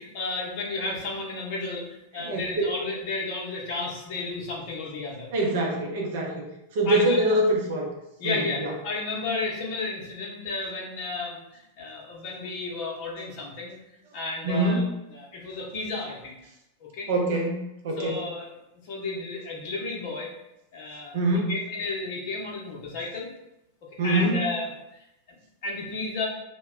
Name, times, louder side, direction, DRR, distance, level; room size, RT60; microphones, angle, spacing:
voice 1, 0.0-5.3 6.8-7.4 8.2-13.8 14.1-14.8 15.1-16.4 16.8-17.1 18.0-18.5 18.8-20.3 20.7-23.3 24.0-26.3, left 3 dB, 45° left, -2 dB, 0.7 m, -33 dB
voice 2, 2.2-2.6 5.3-6.4 6.7-7.9 8.2-8.7 14.4-14.8 17.1-18.2 21.1-21.5 24.0-24.3, right 1 dB, 55° right, 0 dB, 0.6 m, -24 dB
2.1 x 2.1 x 3.5 m, 0.87 s
figure-of-eight pair, 90°, 0 cm